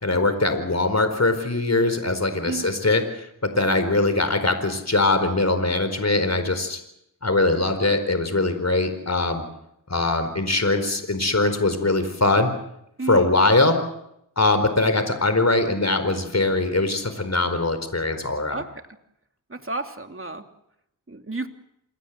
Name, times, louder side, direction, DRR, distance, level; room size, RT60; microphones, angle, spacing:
voice 1, 0.0-3.3 3.6-6.8 7.2-9.4 9.9-12.5 13.1-13.8 14.4-18.6, left 2 dB, 40° left, 9 dB, 4.5 m, -22 dB
voice 2, 2.5-2.8 13.0-13.3 18.5-18.7 19.5-20.4 21.1-21.5, right 3 dB, 30° right, 6 dB, 2.9 m, -31 dB
28.0 x 20.5 x 7.7 m, 0.77 s
cardioid pair, 40°, 40 cm